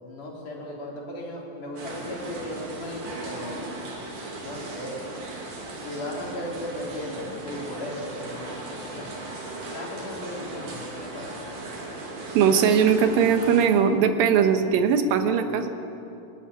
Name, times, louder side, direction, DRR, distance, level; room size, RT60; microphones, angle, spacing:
voice 1, 0.0-3.6 4.4-4.9 5.8-9.3 9.7-11.5, left 1 dB, 60° left, -2 dB, 4.8 m, -36 dB
sound 1, 1.8-13.7, right 2 dB, 65° right, 4.5 m, -37 dB
voice 2, 12.3-15.7, right 7 dB, 80° right, 7 dB, 3.0 m, -20 dB
24.0 x 13.5 x 9.9 m, 2.8 s
omnidirectional pair, 4.1 m